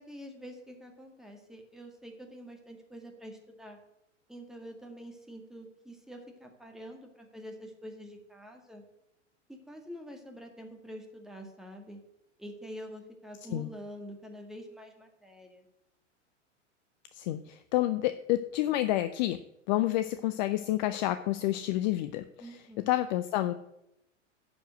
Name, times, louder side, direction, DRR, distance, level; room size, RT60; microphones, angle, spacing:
voice 1, 0.0-3.8 4.3-8.8 9.5-12.0 12.4-15.7 22.4-22.9, equal, ahead, 2 dB, 1.9 m, -46 dB
voice 2, 17.1-19.4 19.7-22.5 22.9-23.5, left 15 dB, 40° left, 12 dB, 0.5 m, -29 dB
11.0 x 5.1 x 8.0 m, 0.84 s
figure-of-eight pair, 95°, 37 cm